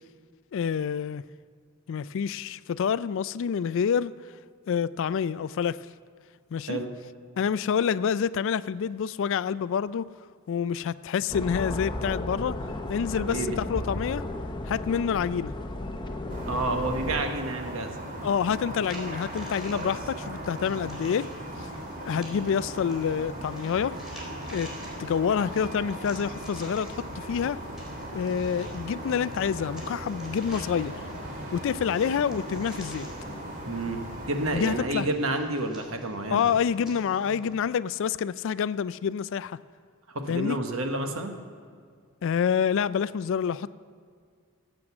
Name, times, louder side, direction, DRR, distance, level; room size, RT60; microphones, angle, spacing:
voice 1, 0.5-1.2 1.9-4.1 4.7-5.8 6.5-6.8 7.4-10.1 10.5-12.5 12.9-14.3 14.7-15.5 18.2-21.3 21.6-21.7 22.0-24.0 24.5-24.7 25.0-27.6 28.1-30.9 31.5-33.1 34.5-35.1 36.3-39.6 40.3-40.6 42.2-43.7, left 7 dB, 65° left, 0.3 m, -27 dB
sound 1, 11.3-17.2, left 1 dB, 20° left, 0.8 m, -34 dB
voice 2, 13.2-13.6 16.5-17.9 19.7-19.9 33.6-34.0 34.3-36.5 40.1-41.3, right 2 dB, 75° right, 1.3 m, -30 dB
sound 2, 16.3-34.8, right 1 dB, 40° right, 2.1 m, -38 dB
sound 3, 18.8-37.6, equal, ahead, 3.8 m, -47 dB
15.5 x 7.7 x 6.0 m
head